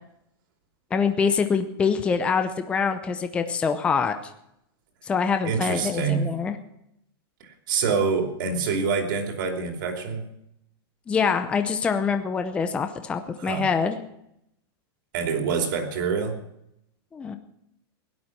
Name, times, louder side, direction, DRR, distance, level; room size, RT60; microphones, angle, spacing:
voice 1, 0.9-4.1 5.0-6.6 11.1-14.0 17.1-17.4, left 5 dB, 10° left, 7 dB, 0.6 m, -25 dB
voice 2, 5.4-6.3 7.4-10.2 13.4-13.6 15.1-16.4, right 5 dB, 50° right, 4 dB, 3.1 m, -26 dB
17.5 x 11.5 x 6.0 m, 0.78 s
supercardioid pair, 175°, 13 cm